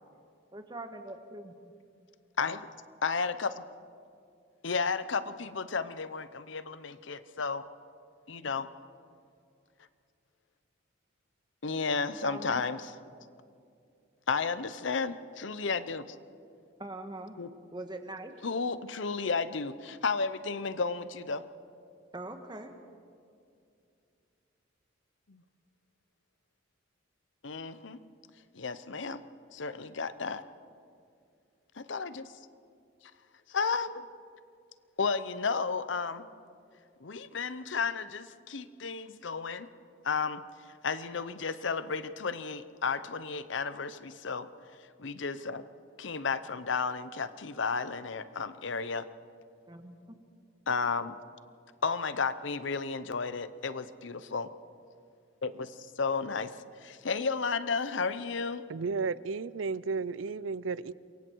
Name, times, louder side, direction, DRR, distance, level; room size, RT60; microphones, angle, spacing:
voice 1, 0.5-1.5 12.2-12.7 16.8-17.4 17.7-18.3 22.1-22.7 49.7-50.2, right 2 dB, 20° right, 6 dB, 1.5 m, -42 dB
voice 2, 3.0-3.6 4.6-7.6 8.3-8.7 11.6-13.0 14.3-16.2 17.4-17.5 18.4-21.4 25.3-25.4 27.4-28.0 28.5-29.2 29.5-30.4 31.8-32.3 33.5-34.1 35.0-36.3 37.0-39.7 40.0-40.4 40.8-44.5 45.0-45.6 46.0-49.1 50.7-51.1 51.8-54.5 55.4-58.6, left 4 dB, 65° left, 13 dB, 0.8 m, -33 dB
voice 3, 58.7-60.9, right 4 dB, 75° right, 19 dB, 0.5 m, -33 dB
27.5 x 23.0 x 4.7 m, 2.4 s
head